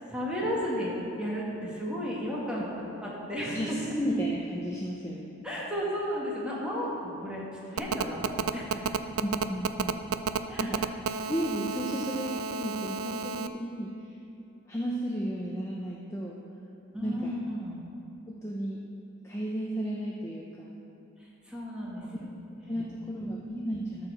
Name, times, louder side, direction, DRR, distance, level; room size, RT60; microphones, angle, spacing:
voice 1, 0.1-3.8 5.4-8.9 10.5-10.8 11.3-11.6 16.9-17.8 21.2-23.2, equal, 5° right, -6 dB, 1.8 m, -34 dB
voice 2, 3.4-5.3 8.2-8.3 9.2-10.0 10.4-10.9 11.3-14.2 14.7-16.4 17.0-17.3 18.3-18.8 19.2-20.7 22.5-24.1, right 1 dB, 15° left, -3 dB, 0.6 m, -33 dB
Telephone, 7.8-13.5, right 6 dB, 80° right, 0.4 m, -31 dB
13.0 x 4.8 x 6.4 m, 2.7 s
head